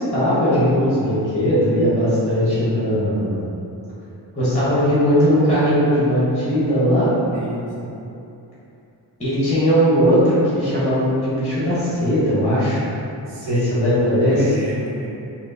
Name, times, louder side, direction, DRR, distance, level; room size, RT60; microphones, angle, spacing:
voice 1, 0.0-3.4 4.3-7.1 9.2-12.8 13.4-14.5, equal, 15° left, -11 dB, 0.9 m, -18 dB
voice 2, 7.3-7.9 13.3-13.7 14.3-15.1, right 1 dB, 90° right, -5 dB, 0.8 m, -31 dB
4.4 x 2.0 x 2.6 m, 2.8 s
wide cardioid pair, 120°, 43 cm